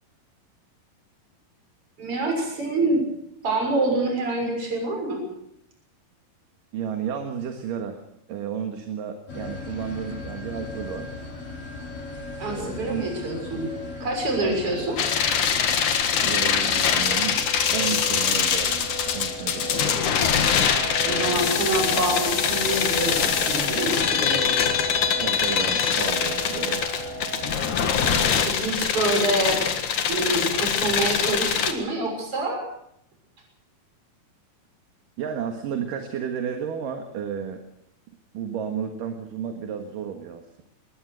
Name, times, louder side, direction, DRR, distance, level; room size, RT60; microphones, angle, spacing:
voice 1, 2.0-3.1 3.4-5.3 12.4-13.7 14.0-15.0 21.0-24.6 28.4-29.6 30.1-32.6, right 2 dB, 35° right, 2 dB, 7.2 m, -26 dB
voice 2, 6.7-8.0 8.3-11.1 12.5-13.1 13.5-13.6 14.4-14.6 16.1-17.4 17.7-20.0 25.2-26.9 29.1-29.2 35.2-37.6 38.3-40.6, right 8 dB, 65° right, 5 dB, 3.1 m, -32 dB
sound 1, 9.3-28.5, equal, 90° left, 8.0 m, -35 dB
sound 2, 15.0-31.7, left 7 dB, 60° left, 2.9 m, -23 dB
21.0 x 20.5 x 6.4 m, 0.75 s
omnidirectional pair, 4.3 m